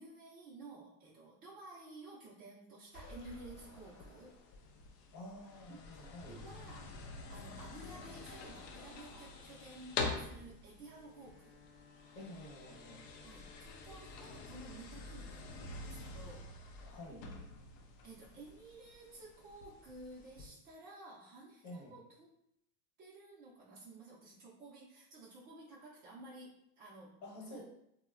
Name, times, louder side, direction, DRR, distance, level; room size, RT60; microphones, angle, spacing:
voice 1, 0.0-4.4 5.7-6.0 6.3-7.0 7.3-11.6 13.2-16.5 18.0-22.3 23.0-27.2 27.5-27.6, right 2 dB, 25° right, -7 dB, 0.3 m, -53 dB
sound 1, 2.9-4.9, left 2 dB, 60° left, 0.9 m, -55 dB
sound 2, 3.5-20.5, left 4 dB, 85° left, 0.6 m, -47 dB
voice 2, 5.1-6.4 12.1-13.0 16.8-17.2 21.6-21.9 27.2-27.6, left 1 dB, 40° left, -3 dB, 1.0 m, -49 dB
Wind instrument woodwind instrument, 10.8-14.9, left 5 dB, 20° left, 0.6 m, -62 dB
2.9 x 2.1 x 2.3 m, 0.78 s
supercardioid pair, 115°, 48 cm